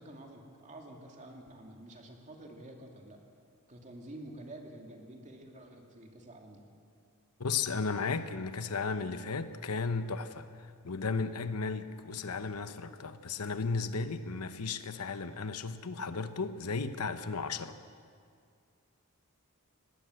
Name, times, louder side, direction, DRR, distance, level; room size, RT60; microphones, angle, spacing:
voice 1, 0.0-3.2 3.7-6.7, right 1 dB, 35° right, 2 dB, 2.5 m, -49 dB
voice 2, 7.4-10.5 10.8-17.8, left 4 dB, 90° left, 11 dB, 1.0 m, -34 dB
19.5 x 18.0 x 7.8 m, 2.2 s
head